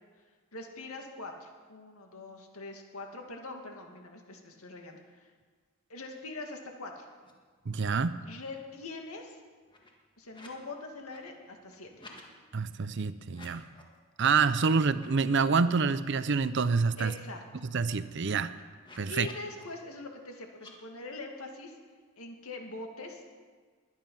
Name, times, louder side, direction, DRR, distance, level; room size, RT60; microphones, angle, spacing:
voice 1, 0.5-5.3 5.9-7.1 8.2-9.4 10.2-12.1 17.0-17.4 19.1-21.8 22.2-23.2, left 2 dB, 75° left, 3 dB, 2.2 m, -43 dB
sound 1, 7.2-7.3 7.6-8.2 8.6-10.7 11.0-12.3 13.2-14.0 14.4-14.5 14.9-16.2 16.6-16.7 17.0-19.6 20.5-20.7, left 2 dB, 20° left, 1.7 m, -55 dB
voice 2, 7.7-8.2 12.5-13.6 14.2-17.1 17.7-18.5 19.0-19.3, right 5 dB, 50° right, 14 dB, 0.6 m, -27 dB
21.0 x 9.4 x 5.5 m, 1.5 s
head